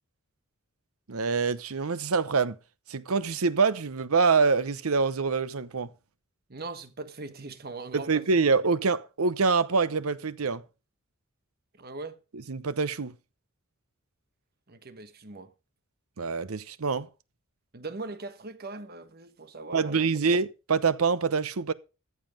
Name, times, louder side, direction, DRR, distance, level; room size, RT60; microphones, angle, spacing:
voice 1, 1.1-2.6 2.9-5.9 7.9-10.6 12.5-13.1 16.2-17.1 19.7-21.7, right 4 dB, 85° right, 0.8 m, -25 dB
voice 2, 6.5-8.3 11.8-12.2 14.7-15.5 17.7-20.1, right 3 dB, 45° right, 1.3 m, -40 dB
14.0 x 7.5 x 5.1 m
head